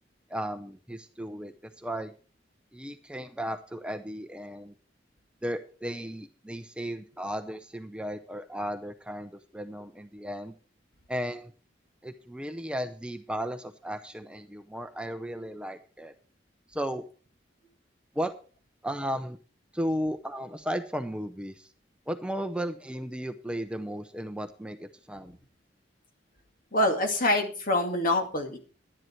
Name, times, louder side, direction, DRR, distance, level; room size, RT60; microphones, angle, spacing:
voice 1, 0.3-2.1 2.7-4.7 5.4-10.5 11.1-11.5 12.0-16.1 16.7-17.0 18.1-18.3 18.8-19.4 19.7-21.7 22.1-25.4, equal, 5° right, 8 dB, 0.6 m, -35 dB
voice 2, 26.7-28.6, left 1 dB, 50° left, 4 dB, 2.4 m, -25 dB
11.0 x 10.5 x 4.5 m, 0.38 s
head